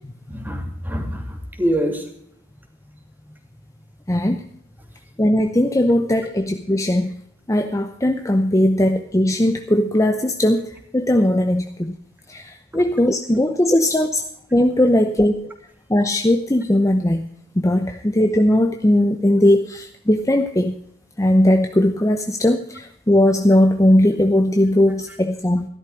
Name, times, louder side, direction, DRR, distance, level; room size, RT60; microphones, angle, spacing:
voice 1, 0.3-2.1 12.7-12.8 14.8-14.9 25.1-25.2, equal, 10° right, 4 dB, 2.6 m, -25 dB
voice 2, 4.1-4.4 5.2-7.1 7.5-10.7 10.9-11.9 12.3-14.2 14.5-15.5 15.9-17.2 17.6-20.7 21.2-25.7, left 1 dB, 15° left, 6 dB, 0.7 m, -18 dB
14.0 x 12.5 x 4.7 m, 0.69 s
head